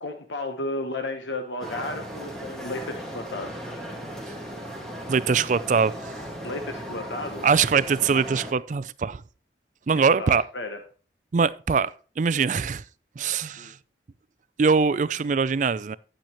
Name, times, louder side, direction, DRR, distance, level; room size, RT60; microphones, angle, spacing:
voice 1, 0.0-3.5 6.4-7.5 9.9-10.8 13.6-13.7, left 2 dB, 85° left, 1.0 m, -33 dB
sound 1, 1.6-8.5, equal, 5° left, 1.8 m, -37 dB
voice 2, 5.1-5.9 7.4-9.2 9.9-10.4 11.3-12.8 13.2-13.8 14.6-16.0, right 5 dB, 45° right, 0.4 m, -22 dB
10.0 x 9.0 x 3.0 m
head